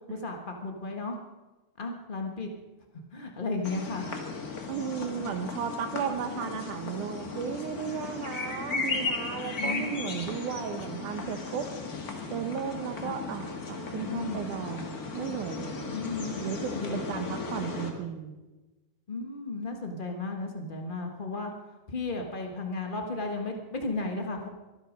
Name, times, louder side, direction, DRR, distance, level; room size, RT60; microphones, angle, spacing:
voice 1, 0.1-1.2 1.8-2.5 3.1-4.1 9.6-10.3 13.0-13.1 13.9-14.6 15.9-17.4 19.1-21.5 21.9-24.5, left 3 dB, 70° left, 3 dB, 0.4 m, -35 dB
sound 1, 3.6-17.9, left 4 dB, 35° left, 1.8 m, -36 dB
voice 2, 4.7-11.7 12.3-16.0 16.4-18.4, right 8 dB, 75° right, 7 dB, 2.4 m, -35 dB
23.5 x 11.5 x 5.2 m, 1.1 s
omnidirectional pair, 3.7 m